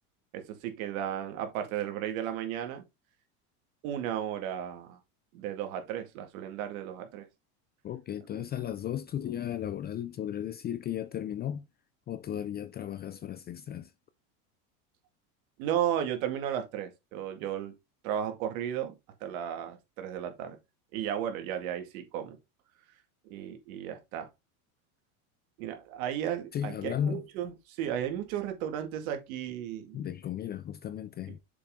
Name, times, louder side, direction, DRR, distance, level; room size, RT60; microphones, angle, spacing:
voice 1, 0.3-2.8 3.8-5.0 5.3-7.3 15.6-17.7 18.0-19.0 19.2-20.6 20.9-22.4 23.3-24.3 25.6-30.0, right 10 dB, 65° right, 2.2 m, -34 dB
voice 2, 7.8-11.7 12.1-13.9 26.5-27.3 29.9-31.4, left 10 dB, 25° left, 0.4 m, -35 dB
6.8 x 5.2 x 3.7 m
hypercardioid pair, 105°, 44 cm